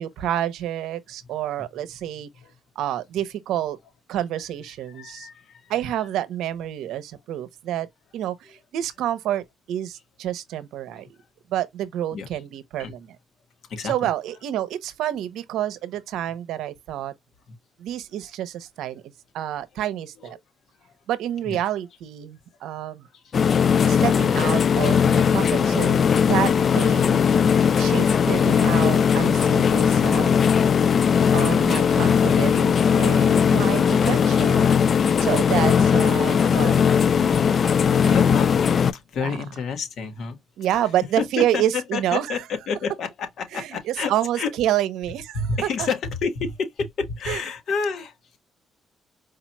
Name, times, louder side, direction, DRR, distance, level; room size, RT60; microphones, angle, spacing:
voice 1, 0.0-2.3 2.8-3.8 4.1-5.3 5.7-7.9 8.1-11.1 11.5-13.1 13.9-17.1 17.8-19.0 19.3-20.4 21.1-23.1 23.8-27.2 27.8-30.4 31.3-34.7 35.2-37.4 38.0-38.2 39.2-39.3 40.6-42.3 43.5-45.4 45.8-45.9 47.3-47.4, right 12 dB, 85° right, 0.7 m, -28 dB
voice 2, 4.9-5.7 6.0-6.1 8.4-8.5 12.1-12.4 12.8-12.9 13.7-14.1 17.5-17.6 20.2-20.3 20.8-20.9 21.4-21.6 23.1-23.3 24.3-25.3 38.1-40.4 40.7-40.8 41.2-44.5 45.3-48.4, left 5 dB, 70° left, 1.4 m, -30 dB
sound 1, 23.3-38.9, left 7 dB, 50° left, 0.4 m, -19 dB
4.7 x 2.9 x 2.2 m
cardioid pair, 90°, 0 cm